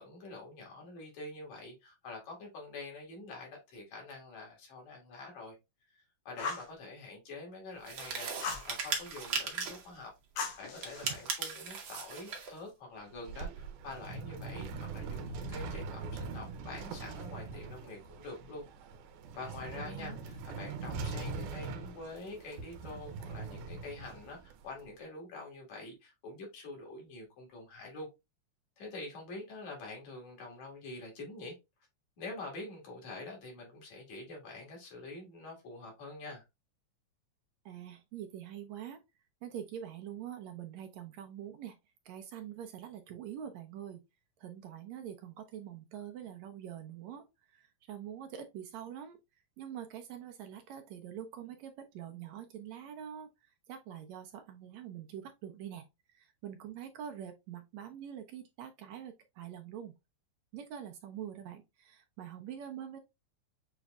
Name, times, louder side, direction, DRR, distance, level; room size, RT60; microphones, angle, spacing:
voice 1, 0.0-5.6 5.9-10.1 10.6-18.6 19.3-28.1 28.8-31.6 32.2-36.4, left 2 dB, 65° left, 3.1 m, -46 dB
Fire, 6.4-6.7 8.4-8.7 10.4-11.3, left 5 dB, 85° left, 2.5 m, -38 dB
sound 1, 7.8-9.9 10.7-12.5, right 5 dB, 60° right, 1.4 m, -37 dB
sound 2, 13.0-24.9, right 4 dB, 90° right, 2.3 m, -42 dB
voice 2, 19.8-20.2 37.7-39.0 39.4-41.8 42.1-44.0 44.4-49.2 49.6-59.9 60.5-63.0, right 9 dB, 75° right, 1.8 m, -45 dB
7.0 x 3.1 x 2.4 m
omnidirectional pair, 3.5 m